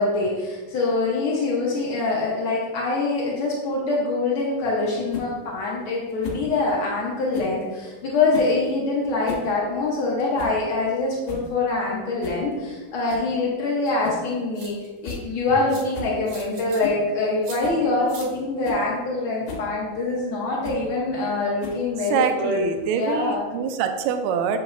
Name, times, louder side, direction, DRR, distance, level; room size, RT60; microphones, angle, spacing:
voice 1, 0.0-14.7 15.0-22.6 22.9-23.5, left 3 dB, 85° left, -4 dB, 1.1 m, -24 dB
sound 1, 5.1-5.3 6.2-6.5 7.3-7.6 8.3-8.6 9.1-9.5 9.8-9.9 10.4-10.6 11.0-11.1 11.3-11.5 12.2-12.4 13.1-13.3 14.0-14.3 14.6-14.7 15.0-15.2 15.5-15.6 15.9-16.2 16.8-17.0 17.6-17.8 18.3-18.4 18.6-18.8 19.5-19.7 20.6-20.9 21.6-22.0, left 5 dB, 70° left, 2.2 m, -34 dB
sound 2, 13.9-14.0 14.5-15.1 15.7-15.8 16.3-16.8 17.4-17.6 18.1-18.3, right 3 dB, 65° right, 2.6 m, -41 dB
voice 2, 22.1-24.6, right 7 dB, 85° right, 7 dB, 2.2 m, -24 dB
7.9 x 5.5 x 2.6 m, 1.3 s
omnidirectional pair, 3.9 m